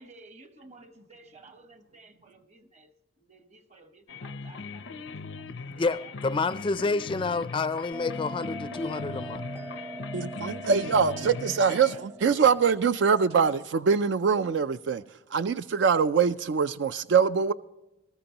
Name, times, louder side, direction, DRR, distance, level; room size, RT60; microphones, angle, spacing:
voice 1, 0.0-2.9 3.2-6.4 11.9-12.3, right 3 dB, 35° right, 1.1 m, -54 dB
sound 1, 4.1-12.0, left 4 dB, 85° left, 0.6 m, -39 dB
voice 2, 5.7-9.4, left 3 dB, 25° left, 0.4 m, -29 dB
Bell, 7.9-13.0, equal, 15° right, 0.6 m, -41 dB
voice 3, 10.1-15.0 15.3-17.5, right 6 dB, 65° right, 0.4 m, -23 dB
20.0 x 13.5 x 2.9 m
head